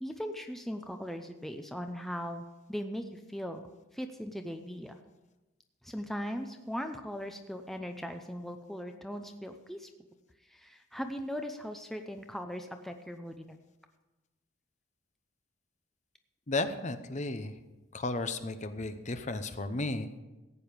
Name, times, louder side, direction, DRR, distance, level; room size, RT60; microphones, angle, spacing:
voice 1, 0.0-3.6 3.9-5.0 5.8-9.9 10.4-13.6, equal, ahead, 5 dB, 0.6 m, -39 dB
voice 2, 16.5-17.5 17.9-20.2, left 2 dB, 35° left, 9 dB, 0.8 m, -34 dB
15.0 x 9.2 x 5.1 m, 1.1 s
head